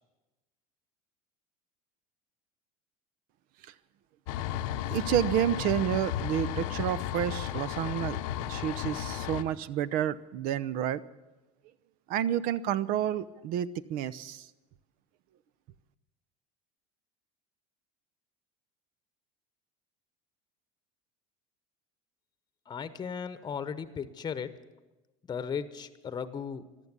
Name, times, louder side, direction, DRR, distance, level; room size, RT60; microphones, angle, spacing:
sound 1, 4.3-9.4, left 11 dB, 80° left, 0.8 m, -34 dB
voice 1, 4.9-8.2 8.5-11.0 12.1-14.4, right 11 dB, 60° right, 15 dB, 0.7 m, -30 dB
voice 2, 22.7-24.6 25.2-26.7, left 6 dB, 25° left, 12 dB, 1.0 m, -36 dB
14.5 x 11.5 x 8.2 m, 1.1 s
supercardioid pair, 100°, 17 cm